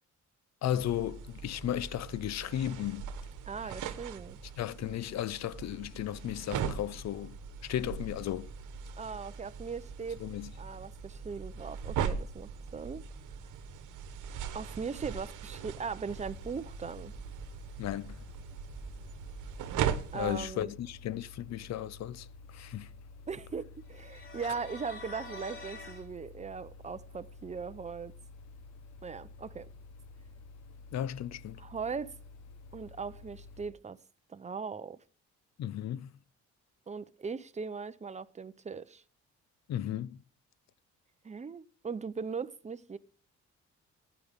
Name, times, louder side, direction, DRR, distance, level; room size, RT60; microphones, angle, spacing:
voice 1, 0.6-3.1 4.6-8.5 10.2-10.5 17.8-18.2 20.1-22.9 30.9-31.6 35.6-36.1 39.7-40.2, left 11 dB, 60° left, 0.6 m, -35 dB
sound 1, 0.7-20.5, right 7 dB, 80° right, 1.2 m, -40 dB
voice 2, 3.4-4.4 9.0-10.2 10.6-13.0 14.5-17.1 20.1-20.7 23.3-28.1 29.0-29.7 31.6-32.1 32.7-34.0 34.3-35.0 36.9-39.0 41.2-43.0, right 5 dB, 25° right, 0.7 m, -39 dB
sound 2, 16.1-33.7, left 3 dB, 90° left, 1.2 m, -51 dB
sound 3, 23.9-26.1, left 3 dB, 40° left, 4.3 m, -46 dB
15.0 x 9.8 x 3.6 m
cardioid pair, 90°, 30 cm